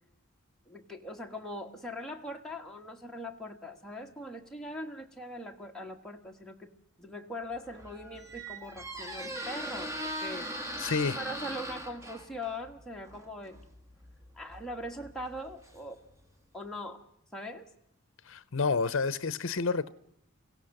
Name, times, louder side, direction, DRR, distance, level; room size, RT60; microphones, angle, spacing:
voice 1, 0.7-6.7 7.0-10.5 11.2-13.6 14.3-16.0 16.5-17.1 17.3-17.7, left 1 dB, 5° left, 1.4 m, -41 dB
Squeak, 7.5-16.3, equal, 15° right, 1.6 m, -41 dB
voice 2, 10.8-11.2 18.3-19.9, left 4 dB, 60° left, 0.7 m, -29 dB
25.0 x 16.5 x 6.6 m
head